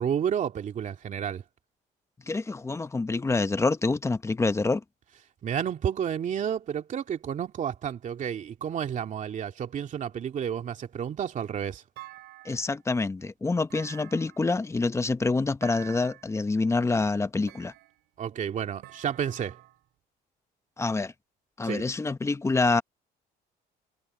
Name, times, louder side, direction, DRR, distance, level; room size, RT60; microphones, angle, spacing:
voice 1, 0.0-1.4 5.4-11.8 18.2-19.6 21.6-21.9, right 8 dB, 50° right, 2.6 m, -31 dB
voice 2, 2.3-4.8 12.4-17.7 20.8-21.1 21.6-22.8, left 3 dB, 15° left, 1.0 m, -26 dB
Thump thud, 12.0-12.9 13.7-14.6 15.6-16.4 17.5-18.2 18.8-19.8, right 18 dB, 90° right, 5.8 m, -48 dB
cardioid pair, 110°, 17 cm